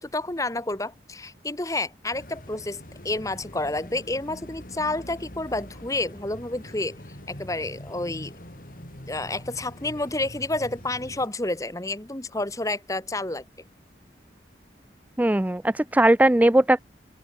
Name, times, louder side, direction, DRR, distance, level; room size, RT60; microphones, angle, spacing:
voice 1, 0.0-7.0 7.3-8.4 9.1-13.4, left 2 dB, 20° left, 1.3 m, -30 dB
sound 1, 2.1-11.3, left 1 dB, 50° left, 4.4 m, -43 dB
voice 2, 15.2-16.8, right 1 dB, 10° right, 0.3 m, -19 dB
open air
head